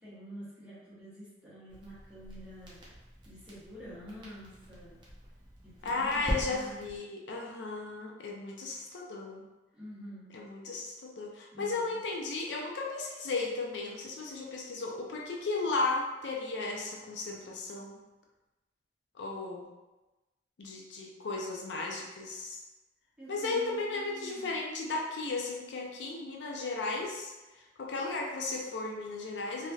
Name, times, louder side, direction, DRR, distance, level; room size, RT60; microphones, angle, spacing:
voice 1, 0.0-2.8 3.2-5.0 5.6-6.9 9.7-10.3 11.5-12.0 23.2-24.5, equal, 5° right, -11 dB, 1.1 m, -48 dB
Crackle, 1.7-7.0, equal, 25° right, 0.6 m, -42 dB
voice 2, 5.8-9.4 10.3-18.0 19.2-19.7 20.6-22.6 23.3-29.7, left 3 dB, 75° left, -1 dB, 0.4 m, -35 dB
3.1 x 2.7 x 2.3 m, 1.1 s
head